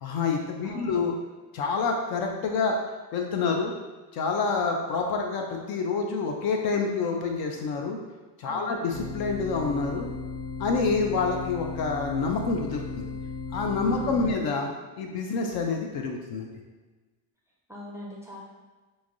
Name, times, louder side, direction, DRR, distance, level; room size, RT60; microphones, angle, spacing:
voice 1, 0.0-1.1 1.5-2.8 3.1-3.7 4.1-8.0 8.4-10.1 10.6-13.0 13.5-14.7 15.0-16.6, left 4 dB, 50° left, 2 dB, 0.5 m, -27 dB
voice 2, 0.6-0.9 8.4-8.8 13.9-14.3 17.7-18.4, left 1 dB, 5° right, -5 dB, 0.4 m, -41 dB
sound 1, 8.9-14.3, left 4 dB, 85° left, 1.5 m, -36 dB
3.1 x 2.6 x 2.5 m, 1.3 s
supercardioid pair, 95°, 49 cm